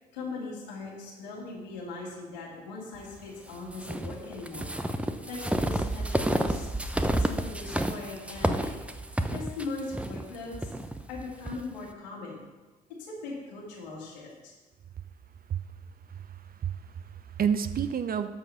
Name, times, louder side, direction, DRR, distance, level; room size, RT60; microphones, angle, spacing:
voice 1, 0.1-4.7 5.3-8.7 9.3-10.7 11.1-12.4 13.0-14.5, left 3 dB, 85° left, -4 dB, 2.6 m, -40 dB
sound 1, 3.7-11.6, right 1 dB, 5° right, 0.8 m, -30 dB
voice 2, 16.1-18.3, right 8 dB, 45° right, 11 dB, 0.8 m, -30 dB
13.0 x 4.9 x 5.8 m, 1.2 s
hypercardioid pair, 50°, 21 cm